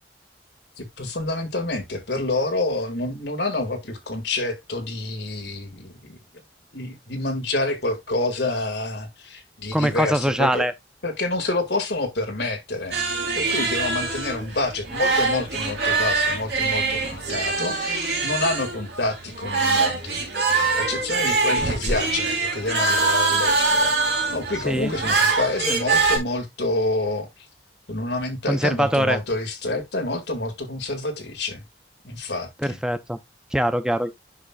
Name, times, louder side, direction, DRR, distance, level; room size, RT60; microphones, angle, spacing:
voice 1, 0.8-6.2 6.7-10.7 11.0-20.2 20.5-23.9 24.3-27.5 27.9-31.6 32.0-32.8, left 2 dB, 75° left, 1.9 m, -28 dB
voice 2, 9.7-10.7 24.7-24.9 28.5-29.2 32.6-33.2 33.5-34.1, right 1 dB, 5° right, 0.5 m, -22 dB
sound 1, 12.9-26.2, right 3 dB, 70° right, 3.3 m, -23 dB
9.6 x 5.9 x 2.3 m
head